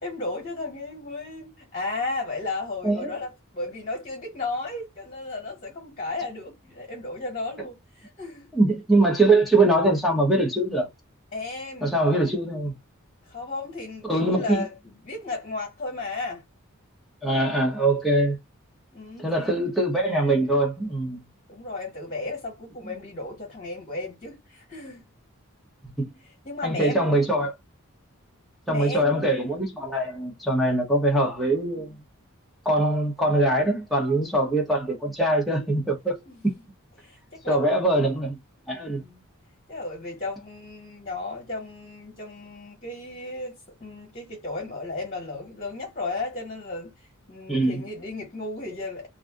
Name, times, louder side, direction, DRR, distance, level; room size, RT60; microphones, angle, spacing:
voice 1, 0.0-8.5 11.3-12.0 13.3-16.4 18.9-19.6 21.5-25.0 26.4-27.1 28.7-29.3 36.3-36.4 37.0-37.8 38.7-39.2 39.7-46.9 47.3-49.1, left 3 dB, 35° left, 1.1 m, -34 dB
voice 2, 8.5-10.9 11.8-12.7 14.1-14.6 17.2-18.4 19.2-21.2 26.0-26.1 26.6-27.5 28.7-32.0 32.6-36.2 36.4-36.5 37.5-38.4 38.7-39.0 47.5-47.8, right 1 dB, ahead, 0.7 m, -22 dB
2.6 x 2.4 x 3.5 m
head